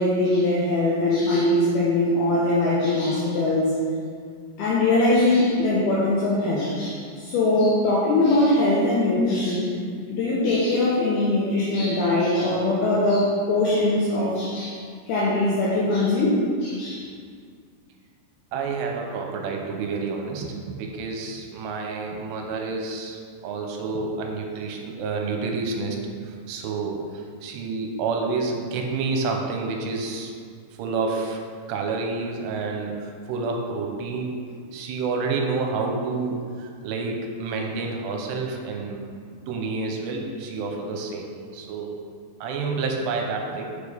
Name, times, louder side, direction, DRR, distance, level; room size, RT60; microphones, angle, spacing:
voice 1, 0.0-3.7 4.6-9.7 10.1-14.8 15.1-17.1, left 2 dB, 75° left, -7 dB, 2.7 m, -21 dB
voice 2, 18.5-26.0 26.2-30.3 30.8-31.4 31.7-34.4 34.7-39.0 39.3-41.9 42.4-43.7, right 4 dB, 90° right, 1 dB, 2.8 m, -29 dB
6.6 x 5.0 x 5.0 m, 2.1 s
omnidirectional pair, 5.0 m